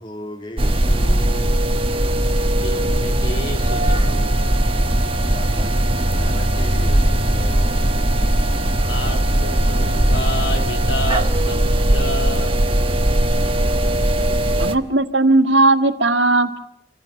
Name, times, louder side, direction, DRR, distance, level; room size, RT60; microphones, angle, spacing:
voice 1, 0.0-1.7 5.3-8.1, left 1 dB, 25° left, 3 dB, 1.8 m, -36 dB
sound 1, 0.6-14.7, right 1 dB, 30° right, 1.1 m, -19 dB
voice 2, 2.4-4.4 8.8-11.6 11.9-12.6 14.1-14.2, left 2 dB, 65° left, 4 dB, 2.4 m, -30 dB
voice 3, 14.6-16.6, right 2 dB, 75° right, 8 dB, 1.8 m, -16 dB
27.0 x 15.5 x 9.6 m, 0.73 s
head